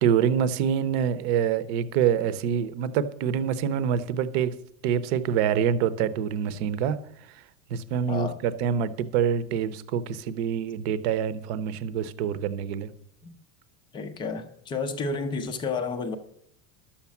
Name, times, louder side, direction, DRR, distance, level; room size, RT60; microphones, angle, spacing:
voice 1, 0.0-4.5 4.8-7.0 7.7-12.9, right 8 dB, 50° right, 15 dB, 0.8 m, -26 dB
voice 2, 8.1-8.4 13.9-16.2, left 4 dB, 10° left, 8 dB, 0.4 m, -31 dB
11.5 x 7.3 x 7.1 m, 0.71 s
supercardioid pair, 175°, 40 cm